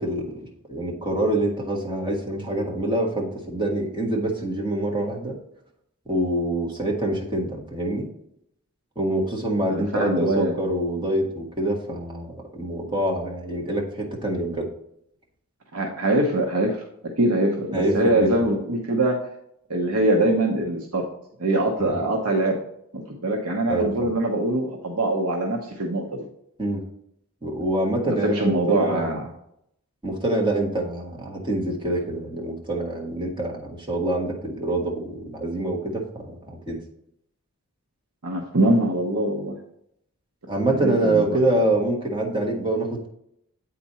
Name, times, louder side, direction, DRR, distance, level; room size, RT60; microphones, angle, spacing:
voice 1, 0.0-5.4 6.1-8.1 8.9-14.7 17.7-18.3 21.8-21.9 23.7-24.1 26.6-26.8 27.4-29.1 30.0-36.8 40.5-43.1, right 1 dB, 20° right, -1 dB, 1.5 m, -26 dB
voice 2, 9.7-10.6 15.7-16.8 17.2-19.2 19.7-21.0 21.4-22.6 22.9-26.3 28.0-29.2 38.2-39.6 40.7-41.4, right 1 dB, 75° right, 1 dB, 1.0 m, -23 dB
8.4 x 4.3 x 4.2 m, 0.74 s
head